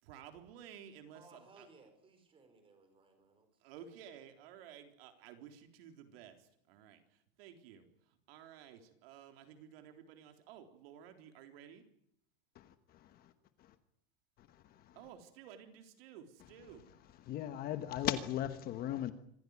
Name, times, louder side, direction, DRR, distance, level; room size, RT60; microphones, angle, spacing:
voice 1, 0.0-1.7 3.6-11.8 14.9-16.9, right 9 dB, 65° right, 6 dB, 3.9 m, -54 dB
voice 2, 1.1-3.5, right 3 dB, 15° right, 7 dB, 5.3 m, -62 dB
voice 3, 12.5-13.3 13.6-13.7 14.4-15.0 17.3-19.1, left 12 dB, 30° left, 11 dB, 1.2 m, -38 dB
26.0 x 16.0 x 9.8 m, 0.71 s
supercardioid pair, 170°, 32 cm